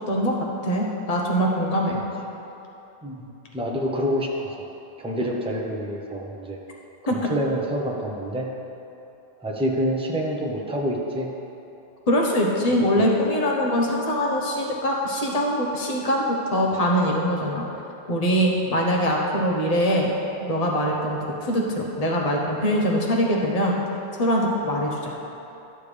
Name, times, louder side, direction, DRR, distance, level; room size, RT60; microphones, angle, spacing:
voice 1, 0.6-2.0 7.1-7.2 12.1-17.6 18.1-20.1 20.4-23.7 24.2-25.2, equal, 35° left, -1 dB, 1.0 m, -23 dB
voice 2, 3.0-4.6 5.0-6.6 7.1-8.5 9.4-11.3 12.9-13.0, equal, 5° right, -2 dB, 0.7 m, -27 dB
12.0 x 6.9 x 3.3 m, 3.0 s
omnidirectional pair, 1.2 m